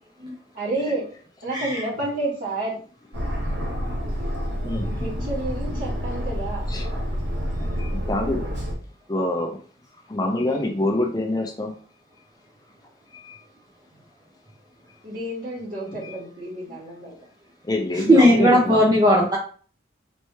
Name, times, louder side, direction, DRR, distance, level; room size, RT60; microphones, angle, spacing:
voice 1, 0.5-1.0 1.4-2.7 4.8-6.7 10.5-10.7 15.0-17.1, right 2 dB, 50° right, -5 dB, 2.0 m, -30 dB
voice 2, 1.5-1.8 3.4-3.9 4.9-5.0 18.1-19.4, equal, 20° right, -3 dB, 0.7 m, -18 dB
Aircraft, 3.1-8.7, equal, 70° right, 1.2 m, -28 dB
voice 3, 4.6-5.0 6.7-6.9 7.6-8.4 9.1-9.6 10.1-11.7 13.2-13.4 15.9-16.1 17.6-19.3, left 1 dB, 20° left, 2 dB, 0.5 m, -26 dB
4.3 x 3.3 x 3.2 m, 0.42 s
head